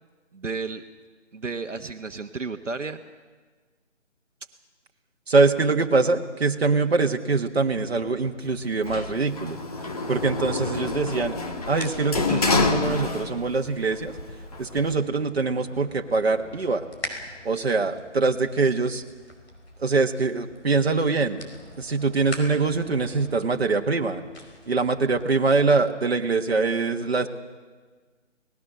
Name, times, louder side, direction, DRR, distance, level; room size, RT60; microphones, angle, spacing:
voice 1, 0.3-0.8 1.3-3.0, right 4 dB, 80° right, 6 dB, 1.3 m, -32 dB
voice 2, 5.3-9.6 10.1-11.4 11.7-14.1 14.6-16.8 17.4-19.0 19.8-21.5 21.8-24.2 24.7-27.3, right 4 dB, 55° right, 4 dB, 1.6 m, -23 dB
sound 1, 7.6-25.3, left 2 dB, 60° left, 5.0 m, -45 dB
Sliding door, 8.9-13.7 14.0-14.9, left 3 dB, 30° left, 1.6 m, -27 dB
23.5 x 19.0 x 6.7 m, 1.4 s
figure-of-eight pair, 160°, 37 cm